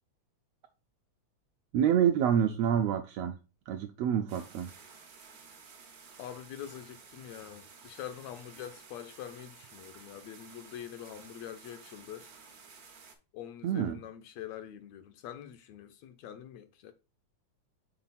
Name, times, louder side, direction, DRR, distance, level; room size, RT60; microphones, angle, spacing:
voice 1, 1.7-3.4 3.7-4.7 13.6-14.0, right 9 dB, 80° right, 1.5 m, -27 dB
sound 1, 4.3-13.1, right 5 dB, 65° right, 0.9 m, -53 dB
voice 2, 6.2-12.3 13.3-16.9, left 10 dB, 75° left, 1.7 m, -45 dB
6.0 x 3.9 x 4.0 m
omnidirectional pair, 3.4 m